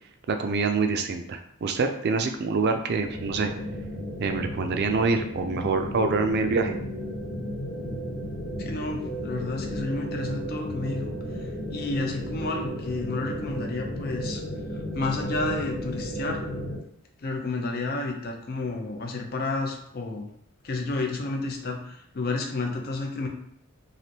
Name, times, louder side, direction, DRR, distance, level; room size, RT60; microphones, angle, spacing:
voice 1, 0.3-3.5 4.2-6.8, right 4 dB, 50° right, 6 dB, 0.4 m, -25 dB
sound 1, 3.0-16.8, equal, 70° left, 0.9 m, -34 dB
voice 2, 8.6-11.2 11.7-14.4 14.9-16.4 17.2-20.3 20.6-23.3, left 3 dB, 50° left, 2 dB, 0.6 m, -31 dB
3.3 x 2.5 x 2.8 m, 0.71 s
head